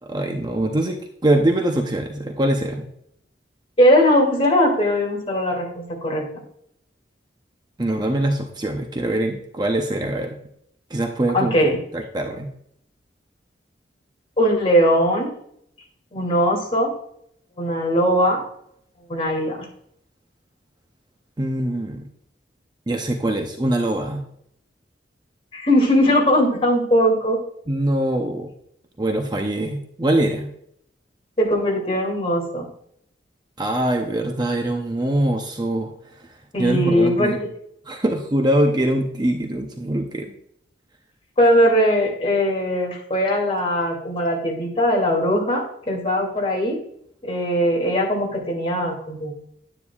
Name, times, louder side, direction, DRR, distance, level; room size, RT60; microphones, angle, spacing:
voice 1, 0.0-2.9 7.8-10.4 10.9-11.5 11.9-12.5 21.4-22.1 22.9-24.3 27.7-28.5 29.0-30.5 33.6-37.4 37.9-40.3, right 1 dB, 25° right, 3 dB, 0.7 m, -23 dB
voice 2, 3.8-6.2 11.3-11.8 14.4-15.3 16.1-16.9 17.6-18.4 19.1-19.6 25.5-27.4 31.4-32.6 36.5-37.3 41.4-46.8 47.2-49.3, equal, 35° left, -2 dB, 2.7 m, -20 dB
9.9 x 9.7 x 2.4 m, 0.70 s
head